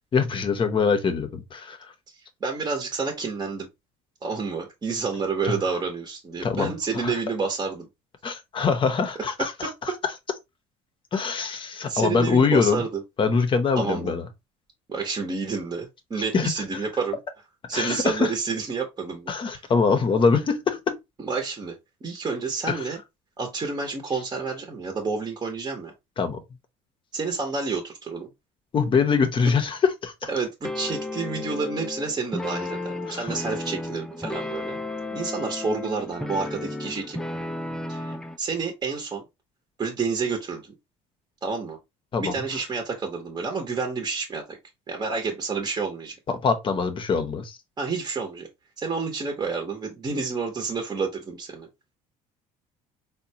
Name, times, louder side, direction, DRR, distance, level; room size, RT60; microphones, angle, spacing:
voice 1, 0.1-1.8 5.4-5.5 6.4-7.2 8.2-9.7 10.0-10.1 11.1-12.8 13.2-14.2 16.3-16.5 17.7-18.3 19.3-21.0 22.7-22.8 26.2-26.4 28.7-30.3 33.1-33.3 42.1-42.3 46.3-47.6, left 5 dB, 35° left, 0.7 m, -23 dB
voice 2, 2.4-3.7 4.2-7.9 9.6-9.7 11.9-13.0 13.8-14.1 14.9-17.2 17.7-19.6 21.2-21.7 22.0-23.0 23.4-25.9 27.1-28.3 30.3-34.8 35.1-37.2 37.9-39.2 39.8-40.7 41.4-41.8 42.2-44.6 44.9-46.2 47.8-48.5 48.8-51.7, right 4 dB, 25° right, 0.8 m, -29 dB
sound 1, 30.6-38.4, left 2 dB, 5° left, 0.3 m, -33 dB
3.8 x 2.2 x 2.7 m
cardioid pair, 100°, 15 cm